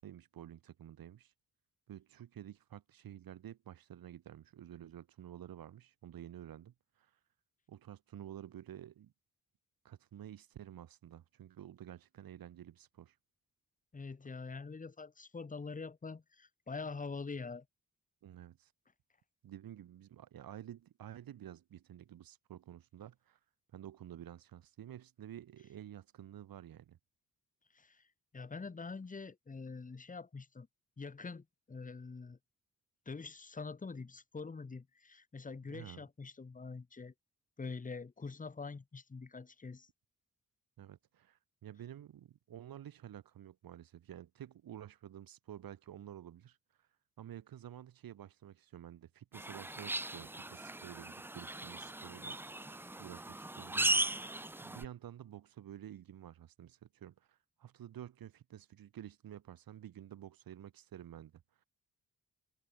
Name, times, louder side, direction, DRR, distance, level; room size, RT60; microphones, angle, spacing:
voice 1, 0.0-1.3 1.9-7.1 7.7-9.1 9.8-13.2 18.2-18.7 19.4-23.4 23.7-27.0 35.7-36.0 40.8-46.9 47.2-52.4 52.7-54.0 54.6-61.4, right 11 dB, 80° right, 0.9 m, -51 dB
voice 2, 13.9-17.6 27.7-28.0 28.3-30.7 31.0-32.4 33.1-37.1 37.6-39.9, left 4 dB, 25° left, 1.2 m, -45 dB
sound 1, 49.3-54.9, right 2 dB, 5° right, 0.3 m, -37 dB
wide cardioid pair, 175°, 34 cm